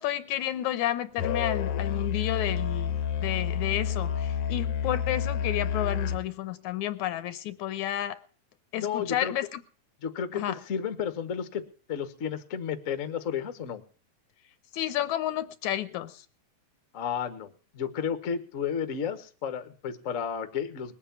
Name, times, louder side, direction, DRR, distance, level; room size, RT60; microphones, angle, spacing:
voice 1, 0.0-8.2 8.7-9.6 10.3-10.6 14.7-16.2, left 13 dB, 80° left, 2.3 m, -31 dB
Musical instrument, 1.2-6.3, left 8 dB, 65° left, 1.6 m, -29 dB
voice 2, 8.8-9.3 10.0-11.6 11.9-13.8 16.9-20.9, left 7 dB, 45° left, 1.0 m, -32 dB
20.0 x 8.3 x 7.0 m
omnidirectional pair, 3.4 m